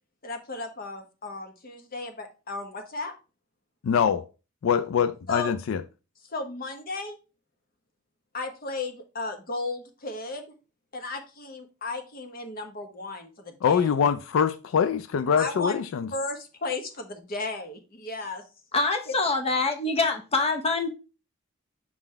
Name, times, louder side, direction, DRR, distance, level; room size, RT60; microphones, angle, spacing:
voice 1, 0.2-3.1 5.3-5.5 6.3-7.2 8.3-10.4 10.9-13.9 15.4-15.8 16.1-18.4 19.1-19.2, left 3 dB, 50° left, 1.1 m, -34 dB
voice 2, 3.8-4.3 4.6-5.8 13.6-16.1, left 7 dB, 85° left, 0.4 m, -24 dB
voice 3, 18.7-20.9, left 3 dB, 30° left, 0.7 m, -25 dB
6.1 x 3.9 x 4.2 m
head